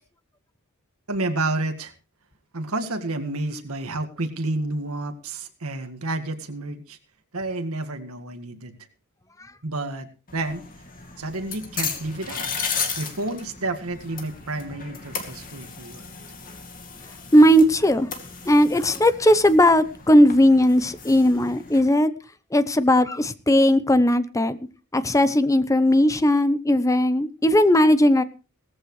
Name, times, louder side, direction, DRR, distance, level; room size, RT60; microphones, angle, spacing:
voice 1, 1.1-1.9 2.5-7.0 7.3-8.7 9.6-10.6 11.2-12.7 13.0-16.2, right 2 dB, 70° right, 7 dB, 1.9 m, -30 dB
sound 1, 10.3-21.8, left 6 dB, 40° left, 2.4 m, -35 dB
voice 2, 17.3-18.1 18.5-22.1 22.5-24.6 24.9-28.2, equal, 15° left, 14 dB, 0.8 m, -17 dB
18.0 x 14.5 x 3.2 m, 0.32 s
head